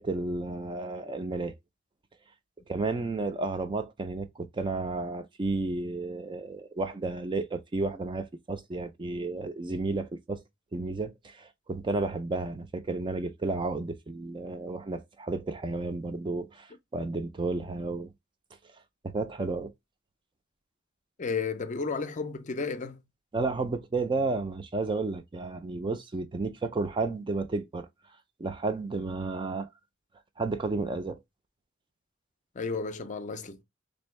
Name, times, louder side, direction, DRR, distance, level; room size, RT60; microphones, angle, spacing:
voice 1, 0.0-1.6 2.7-10.4 10.7-18.1 19.0-19.7 23.3-27.9 28.4-29.7 30.4-31.2, right 3 dB, 25° right, 0.4 m, -32 dB
voice 2, 21.2-23.0 32.6-33.6, left 4 dB, 40° left, 0.5 m, -33 dB
3.7 x 2.6 x 3.1 m
head